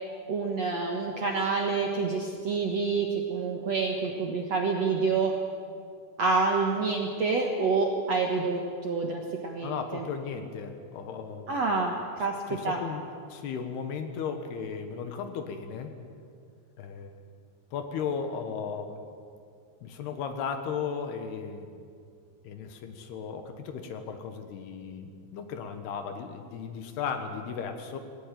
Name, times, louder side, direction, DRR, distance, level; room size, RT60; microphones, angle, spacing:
voice 1, 0.3-5.3 6.2-10.0 11.5-12.8, right 4 dB, 60° right, 1 dB, 1.8 m, -28 dB
voice 2, 9.6-11.6 12.5-13.0 13.3-15.9 16.8-17.1 17.7-19.0 19.8-21.7 22.4-28.0, left 6 dB, 70° left, 7 dB, 3.2 m, -35 dB
19.5 x 19.0 x 9.1 m, 2.3 s
omnidirectional pair, 5.1 m